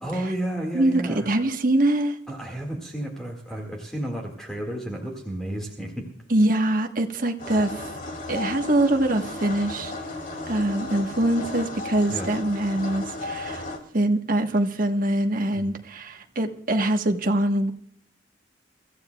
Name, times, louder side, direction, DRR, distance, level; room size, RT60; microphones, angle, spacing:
voice 1, 0.0-1.3 2.3-6.1 12.1-12.3 15.5-15.7, right 1 dB, 5° left, 1.8 m, -32 dB
voice 2, 0.7-2.2 6.3-7.9 8.3-9.9 10.5-13.7 13.9-17.7, right 1 dB, 45° right, 1.2 m, -23 dB
sound 1, 7.4-13.8, left 2 dB, 45° left, 2.3 m, -34 dB
24.5 x 14.5 x 2.3 m
head